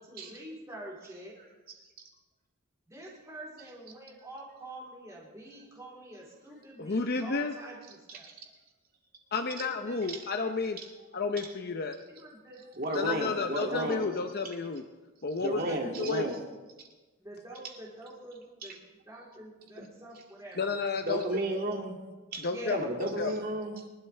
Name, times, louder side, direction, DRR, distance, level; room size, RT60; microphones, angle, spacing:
voice 1, 0.0-1.4 2.9-8.3 9.6-10.0 10.4-10.5 12.1-14.0 15.6-15.9 17.2-20.8 22.5-22.9, right 1 dB, 15° right, -4 dB, 3.7 m, -46 dB
voice 2, 6.8-7.5 9.3-10.8 11.1-12.0 12.9-14.8 15.2-15.6 16.0-16.3 20.6-21.2 22.4-22.8 23.2-23.3, left 4 dB, 50° left, 5 dB, 0.7 m, -31 dB
voice 3, 12.8-14.0 15.4-16.4 18.6-18.7 19.8-19.9 21.1-22.0 22.3-23.8, right 1 dB, 45° right, 1 dB, 2.4 m, -33 dB
24.5 x 12.0 x 3.4 m, 1.2 s
head